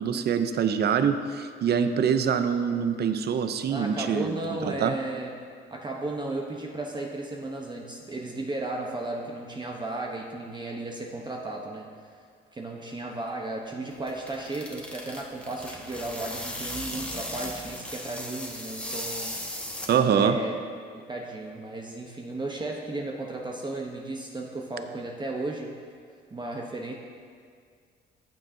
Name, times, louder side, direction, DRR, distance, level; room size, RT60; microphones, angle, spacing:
voice 1, 0.0-4.9 19.9-20.4, right 7 dB, 55° right, 9 dB, 0.6 m, -25 dB
voice 2, 3.7-5.3 5.7-11.9 12.5-19.4 20.2-20.5 20.9-25.7 26.3-26.9, right 2 dB, 20° right, 0 dB, 0.9 m, -34 dB
sound 1, 13.9-20.3, left 1 dB, 5° left, 1.3 m, -37 dB
14.5 x 7.5 x 2.7 m, 2.1 s
cardioid pair, 90°, 20 cm